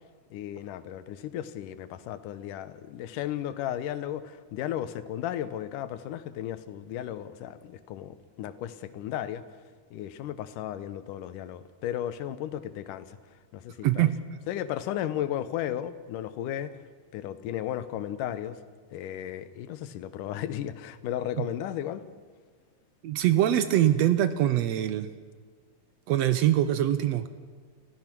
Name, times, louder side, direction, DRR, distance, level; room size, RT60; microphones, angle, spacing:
voice 1, 0.3-9.4 9.9-13.2 13.5-14.0 14.5-16.7 17.1-18.6 18.9-22.0, left 11 dB, 90° left, 13 dB, 2.5 m, -34 dB
voice 2, 13.8-14.2 21.4-21.5 23.0-25.1 26.1-27.3, right 12 dB, 75° right, 12 dB, 1.6 m, -23 dB
29.5 x 16.0 x 6.1 m, 1.5 s
omnidirectional pair, 3.6 m